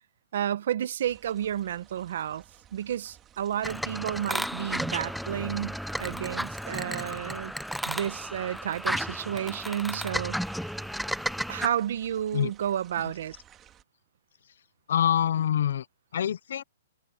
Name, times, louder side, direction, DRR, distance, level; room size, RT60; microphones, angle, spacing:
voice 1, 0.3-2.4 2.7-7.5 7.9-10.6 11.5-13.3, right 10 dB, 60° right, 1.1 m, -31 dB
sound 1, 1.0-13.8, right 10 dB, 20° right, 2.5 m, -57 dB
sound 2, 3.6-11.7, equal, ahead, 0.8 m, -33 dB
voice 2, 14.9-15.9 16.1-16.6, left 9 dB, 65° left, 0.6 m, -26 dB
hypercardioid pair, 160°, 0 cm